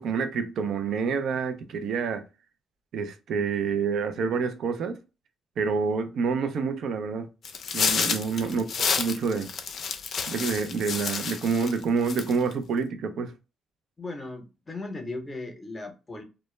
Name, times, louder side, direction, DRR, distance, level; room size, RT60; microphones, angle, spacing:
voice 1, 0.0-2.2 2.9-5.0 5.6-7.3 7.7-9.5 10.3-13.3, right 5 dB, 70° right, 0.4 m, -28 dB
sound 1, 7.4-11.8 12.1-12.5, left 6 dB, 55° left, 0.4 m, -29 dB
voice 2, 8.3-8.6 14.0-16.2, left 2 dB, 30° left, 0.7 m, -37 dB
2.1 x 2.0 x 3.1 m
cardioid pair, 90°, 0 cm